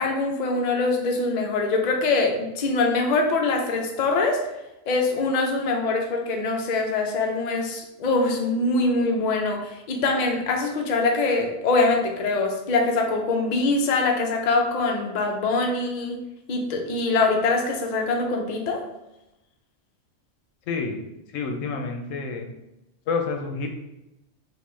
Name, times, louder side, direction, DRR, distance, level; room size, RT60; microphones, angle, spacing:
voice 1, 0.0-4.5 4.9-16.2 16.5-18.8, left 3 dB, 55° left, 2 dB, 0.5 m, -23 dB
voice 2, 20.7-21.0 21.3-22.5 23.1-23.7, left 4 dB, 80° left, 4 dB, 0.9 m, -28 dB
3.7 x 2.5 x 3.1 m, 0.92 s
omnidirectional pair, 1.3 m